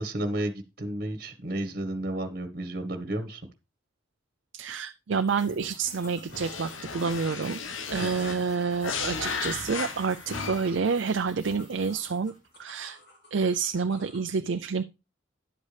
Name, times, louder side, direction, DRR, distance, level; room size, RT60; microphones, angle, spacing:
voice 1, 0.0-3.4 8.0-8.5 10.7-10.8, right 1 dB, 50° right, 8 dB, 1.4 m, -32 dB
voice 2, 4.5-7.6 7.9-12.3 12.6-13.0 13.3-14.8, right 5 dB, 70° right, 8 dB, 0.5 m, -28 dB
sound 1, 5.2-12.7, left 1 dB, 40° left, 3.5 m, -52 dB
sound 2, 5.6-14.3, left 2 dB, 55° left, 3.5 m, -55 dB
sound 3, 6.3-10.9, left 5 dB, 85° left, 1.2 m, -35 dB
10.5 x 8.2 x 3.4 m, 0.26 s
head